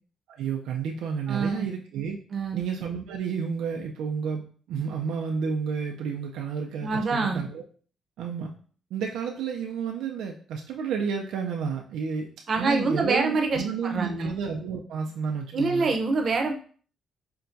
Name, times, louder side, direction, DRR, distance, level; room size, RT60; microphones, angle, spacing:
voice 1, 0.3-2.2 2.5-7.6 8.2-8.5 8.9-12.3 12.6-15.9, right 6 dB, 85° right, 1 dB, 0.4 m, -31 dB
voice 2, 1.3-1.7 2.3-2.6 6.8-7.4 12.5-14.3 15.5-16.5, right 3 dB, 50° right, 3 dB, 0.7 m, -26 dB
5.7 x 2.2 x 2.6 m, 0.43 s
cardioid pair, 90°, 0 cm